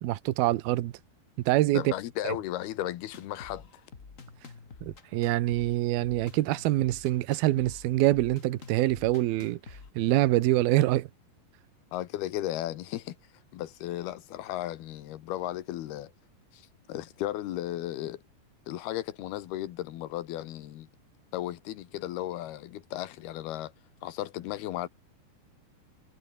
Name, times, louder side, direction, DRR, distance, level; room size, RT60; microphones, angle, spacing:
voice 1, 0.0-0.9 1.5-1.9 2.2-2.4 4.8-9.6 10.0-11.1, right 16 dB, 70° right, 2.7 m, -25 dB
voice 2, 1.7-3.7 11.9-13.2 13.5-16.1 16.5-18.2 18.7-20.9 21.3-23.7 24.0-24.9, left 14 dB, 70° left, 3.0 m, -35 dB
sound 1, 3.1-9.9, left 5 dB, 55° left, 0.9 m, -49 dB
omnidirectional pair, 5.0 m